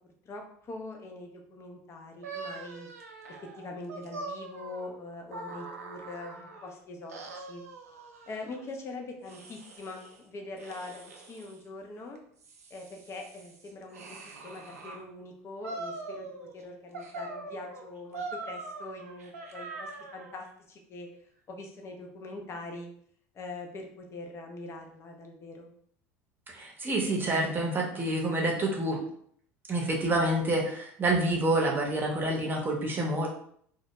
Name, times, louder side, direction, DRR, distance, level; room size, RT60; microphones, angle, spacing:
voice 1, 0.3-2.9 3.6-7.6 8.3-12.2 12.7-16.3 16.5-21.1 21.5-22.9 23.3-25.7, left 2 dB, 35° left, 2 dB, 0.5 m, -43 dB
sound 1, 2.2-6.7 7.1-8.6 9.2-10.2 10.6-11.6 12.2-15.0 15.6-16.6 16.9-20.4, right 3 dB, 85° right, 0.4 m, -43 dB
voice 2, 26.5-29.0 29.7-33.3, right 1 dB, 25° right, -1 dB, 0.7 m, -28 dB
2.2 x 2.0 x 2.9 m, 0.63 s
hypercardioid pair, 75°, 8 cm